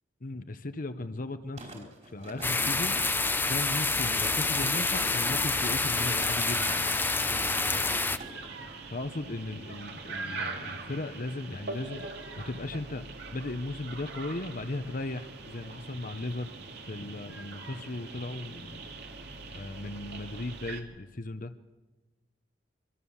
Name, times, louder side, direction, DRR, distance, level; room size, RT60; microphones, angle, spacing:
voice 1, 0.2-3.0 3.5-6.8 8.9-12.1 12.4-13.1 13.3-16.5 16.9-18.8 19.5-21.5, left 2 dB, 45° left, 9 dB, 0.9 m, -36 dB
sound 1, 1.6-8.3 8.7-8.8, right 2 dB, 40° right, 4.3 m, -45 dB
sound 2, 2.4-8.2, left 3 dB, 10° left, 0.7 m, -28 dB
sound 3, 4.1-20.8, right 3 dB, 60° right, 2.7 m, -42 dB
25.5 x 25.0 x 7.2 m, 1.2 s
head